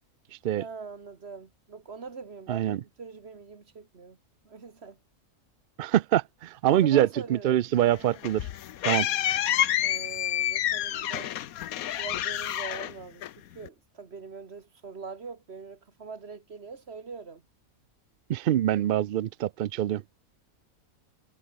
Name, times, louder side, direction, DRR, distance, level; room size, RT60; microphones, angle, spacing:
voice 1, 0.6-4.2 4.4-5.0 6.7-7.6 9.8-11.3 12.0-17.4, right 5 dB, 45° right, 2.0 m, -42 dB
voice 2, 2.5-2.8 5.8-8.5 8.8-9.1 18.3-20.0, right 12 dB, 75° right, 0.5 m, -25 dB
sound 1, 7.9-13.7, left 12 dB, 80° left, 1.2 m, -29 dB
omnidirectional pair, 1.5 m